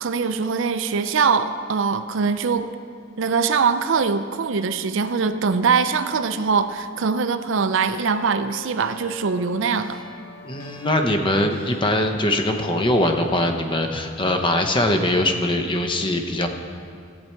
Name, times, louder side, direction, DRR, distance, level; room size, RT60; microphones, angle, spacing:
voice 1, 0.0-2.7 3.2-10.0, right 5 dB, 65° right, 10 dB, 0.5 m, -22 dB
sound 1, 7.8-13.5, left 3 dB, 80° left, 1.2 m, -42 dB
voice 2, 10.4-16.5, left 1 dB, 25° left, 5 dB, 0.7 m, -22 dB
15.0 x 8.5 x 4.5 m, 2.2 s
head